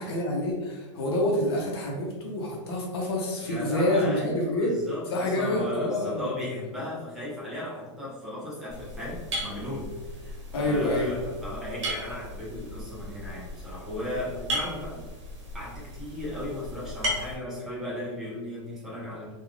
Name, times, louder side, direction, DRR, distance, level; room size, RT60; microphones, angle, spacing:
voice 1, 0.0-4.7 5.1-6.3 10.5-11.2, left 1 dB, 55° left, -1 dB, 0.8 m, -27 dB
voice 2, 3.4-15.0 15.5-19.3, left 1 dB, 5° right, -7 dB, 0.3 m, -36 dB
sound 1, 8.7-17.4, equal, 65° right, 0.9 m, -36 dB
2.3 x 2.3 x 3.2 m, 1.2 s
supercardioid pair, 180°, 16 cm